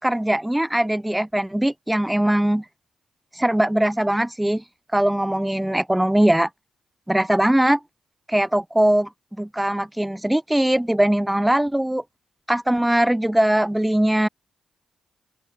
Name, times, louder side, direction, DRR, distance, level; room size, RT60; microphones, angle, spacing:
voice 1, 0.0-2.6 3.4-4.6 4.9-6.5 7.1-7.8 8.3-9.1 9.4-12.0 12.5-14.3, right 1 dB, 10° right, 4.3 m, -20 dB
open air
hypercardioid pair, 40°, 0 cm